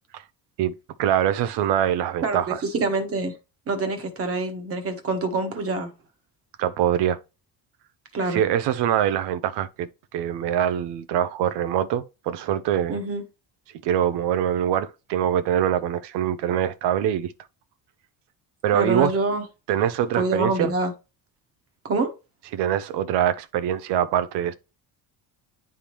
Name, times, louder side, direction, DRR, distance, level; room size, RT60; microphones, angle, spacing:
voice 1, 1.0-2.6 6.6-7.2 8.3-13.0 13.8-17.3 18.6-19.1 19.7-20.7 22.5-24.5, right 10 dB, 80° right, 0.7 m, -24 dB
voice 2, 2.7-3.3 3.7-5.9 8.1-8.4 12.9-13.2 18.7-19.4 20.2-20.9 21.8-22.1, right 3 dB, 35° right, 1.2 m, -25 dB
9.9 x 3.6 x 3.0 m
cardioid pair, 160°, 40 cm